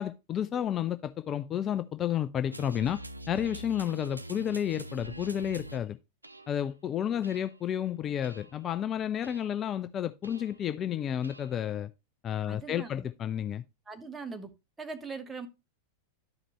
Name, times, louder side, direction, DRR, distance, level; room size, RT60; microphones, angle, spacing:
voice 1, 0.0-3.0 3.3-6.0 6.5-11.9 12.2-13.6, left 10 dB, 25° left, 0.4 m, -31 dB
sound 1, 2.5-5.8 6.2-6.6 7.2-7.7 8.2-8.6 9.2-9.6 10.2-10.7 11.2-11.7, right 1 dB, 85° right, 0.5 m, -44 dB
voice 2, 12.5-13.0 13.9-14.5 14.8-15.5, right 4 dB, 15° right, 1.2 m, -40 dB
11.5 x 5.0 x 3.0 m
figure-of-eight pair, 90°, 0 cm